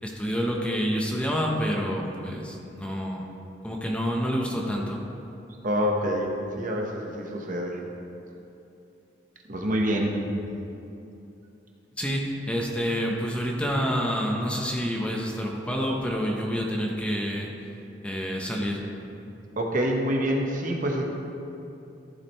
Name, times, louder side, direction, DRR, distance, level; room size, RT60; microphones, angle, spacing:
voice 1, 0.0-3.2 3.6-5.0 12.0-17.5 18.0-18.8, equal, 5° left, -1 dB, 0.9 m, -28 dB
voice 2, 5.6-7.8 9.5-10.2 19.6-21.0, equal, 50° right, 1 dB, 1.0 m, -26 dB
14.0 x 4.9 x 4.5 m, 2.7 s
head